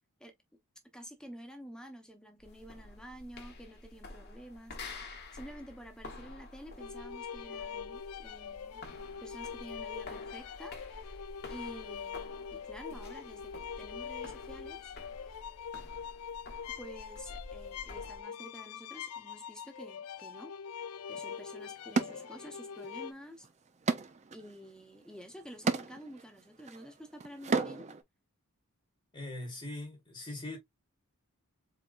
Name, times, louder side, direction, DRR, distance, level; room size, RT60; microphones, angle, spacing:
voice 1, 0.9-4.8 5.3-8.8 9.2-10.8 11.0-11.2 11.5-14.8 16.8-20.5 21.1-23.5 24.3-27.9, equal, 5° left, 0.9 m, -49 dB
sound 1, 2.4-18.2, left 2 dB, 45° left, 1.1 m, -49 dB
sound 2, 6.8-23.1, left 7 dB, 80° left, 0.4 m, -43 dB
sound 3, 21.1-21.2 21.9-22.9 23.2-28.0, right 4 dB, 30° right, 0.5 m, -35 dB
voice 2, 29.1-30.6, left 2 dB, 25° left, 1.2 m, -41 dB
4.2 x 3.8 x 2.4 m
head